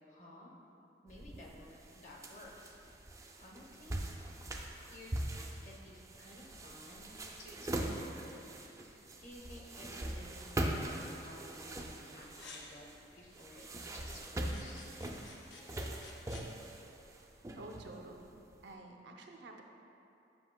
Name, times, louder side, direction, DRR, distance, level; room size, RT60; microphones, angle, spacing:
voice 1, 0.1-0.5 1.0-3.1 3.4-4.0 4.9-8.5 8.8-12.9 13.1-13.7 13.9-14.8, left 1 dB, 45° left, -2 dB, 0.8 m, -54 dB
sound 1, 1.1-18.5, right 1 dB, 20° right, 0.3 m, -42 dB
sound 2, 12.3-13.5 14.4-16.5, left 3 dB, 85° left, 0.7 m, -54 dB
voice 2, 17.6-19.6, right 2 dB, 80° right, 2 dB, 0.5 m, -50 dB
7.6 x 5.5 x 2.2 m, 2.7 s
head